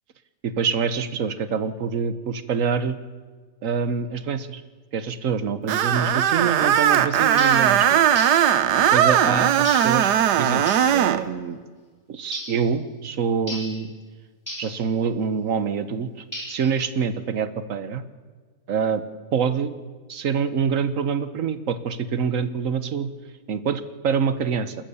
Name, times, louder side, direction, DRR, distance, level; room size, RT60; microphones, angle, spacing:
voice 1, 0.4-3.0 3.6-4.6 4.9-8.0 8.9-11.6 12.1-13.9 14.6-16.1 16.5-18.0 18.7-19.0 19.3-19.7 20.1-23.1 23.5-24.8, right 6 dB, 55° right, 12 dB, 1.4 m, -25 dB
Screech, 5.7-11.2, right 9 dB, 85° right, 1.4 m, -19 dB
sound 1, 7.4-7.7 8.1-8.5 9.6-10.0 10.7-10.9 12.3-12.6 13.5-13.8 14.5-14.8 16.3-16.7, left 1 dB, 10° left, 5.1 m, -34 dB
29.0 x 13.5 x 7.0 m, 1.4 s
omnidirectional pair, 1.7 m